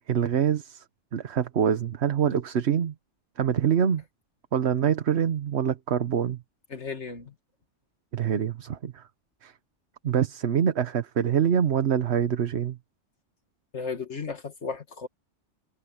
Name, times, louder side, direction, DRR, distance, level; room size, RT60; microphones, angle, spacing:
voice 1, 0.1-0.8 1.1-2.9 3.4-4.0 4.5-6.4 8.1-9.1 9.4-9.5 10.0-12.8, right 8 dB, 65° right, 1.2 m, -25 dB
voice 2, 6.7-7.3 13.7-15.1, left 5 dB, 75° left, 2.4 m, -34 dB
omnidirectional pair, 1.2 m